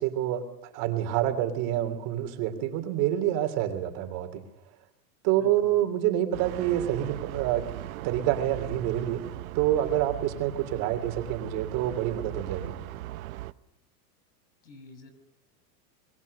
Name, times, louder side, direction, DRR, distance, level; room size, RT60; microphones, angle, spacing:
voice 1, 0.0-4.4 5.2-7.7 8.0-9.2 9.5-12.8, right 12 dB, 40° right, 7 dB, 3.3 m, -27 dB
voice 2, 5.4-5.8 14.6-15.1, left 3 dB, 80° left, 11 dB, 6.5 m, -48 dB
sound 1, 6.3-13.5, right 16 dB, 55° right, 1.0 m, -39 dB
26.5 x 22.0 x 6.7 m, 0.90 s
supercardioid pair, 145°, 50 cm